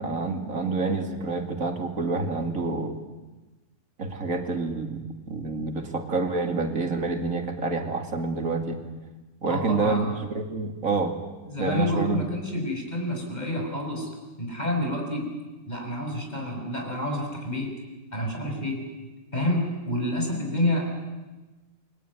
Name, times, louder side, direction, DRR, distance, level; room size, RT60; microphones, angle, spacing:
voice 1, 0.0-3.0 4.0-8.8 9.4-11.2 11.6-12.3, right 3 dB, 85° right, 5 dB, 3.0 m, -28 dB
voice 2, 9.5-10.0 11.4-14.1 14.4-15.3 15.7-17.7 18.1-18.8 19.3-20.9, left 1 dB, 30° left, 1 dB, 6.2 m, -28 dB
28.5 x 21.5 x 9.6 m, 1.2 s
omnidirectional pair, 1.4 m